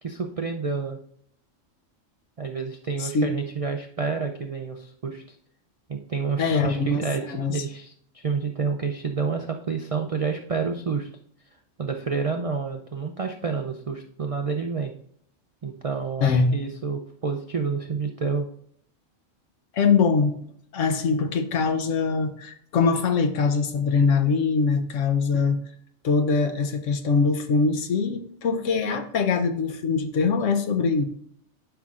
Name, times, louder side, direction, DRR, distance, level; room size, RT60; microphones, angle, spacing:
voice 1, 0.0-1.0 2.4-5.4 5.9-11.1 11.8-14.9 15.6-18.5, right 5 dB, 70° right, 4 dB, 0.3 m, -29 dB
voice 2, 3.0-3.3 6.4-7.6 16.2-16.6 19.7-20.3 20.7-25.6 26.0-31.1, left 4 dB, 70° left, 7 dB, 1.1 m, -23 dB
11.5 x 5.7 x 2.5 m, 0.65 s
omnidirectional pair, 1.4 m